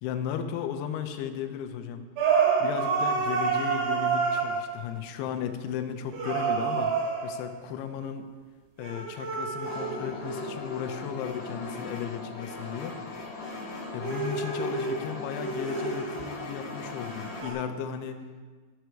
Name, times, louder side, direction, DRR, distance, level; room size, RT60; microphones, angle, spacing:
voice 1, 0.0-2.0 2.6-6.9 7.2-8.3 8.8-13.0 13.9-18.2, left 8 dB, 80° left, 6 dB, 2.6 m, -35 dB
sound 1, 2.2-4.8 6.1-7.5 8.8-11.9 13.4-16.7 17.1-17.5, right 5 dB, 75° right, 3.6 m, -29 dB
sound 2, 9.6-17.4, left 3 dB, 65° left, 1.9 m, -39 dB
12.5 x 6.4 x 4.6 m, 1.4 s
omnidirectional pair, 5.0 m